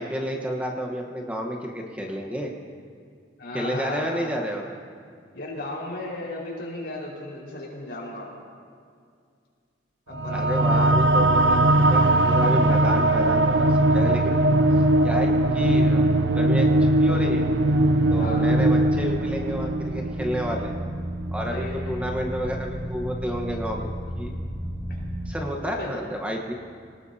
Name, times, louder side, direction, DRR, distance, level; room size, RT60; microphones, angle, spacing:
voice 1, 0.0-2.5 3.5-4.8 10.3-13.7 13.9-14.3 15.0-16.0 16.3-16.7 17.0-17.4 18.1-20.7 21.3-23.9 24.2-24.3 25.3-26.5, equal, 5° right, 0 dB, 1.1 m, -30 dB
voice 2, 3.4-4.3 5.3-8.3 10.1-11.5 18.1-18.5 21.5-22.1 24.9-25.0 25.6-25.9, left 2 dB, 65° left, -3 dB, 4.7 m, -35 dB
sound 1, 10.1-21.1, right 1 dB, 90° right, 0.6 m, -20 dB
sound 2, 17.9-25.3, equal, 40° right, 2.1 m, -33 dB
24.5 x 19.5 x 2.8 m, 2.2 s
head